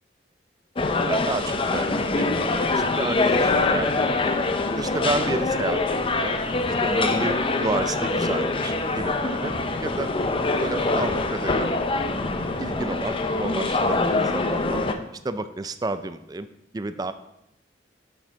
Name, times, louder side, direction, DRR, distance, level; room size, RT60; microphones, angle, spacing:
sound 1, 0.8-14.9, left 3 dB, 30° left, 0.5 m, -24 dB
voice 1, 1.0-2.3 2.5-4.3 4.7-6.4 6.8-9.5 9.8-10.1 10.6-11.7 12.6-14.8 15.2-16.5 16.7-17.1, right 2 dB, 20° right, 12 dB, 0.4 m, -31 dB
6.4 x 6.4 x 4.7 m, 0.85 s
head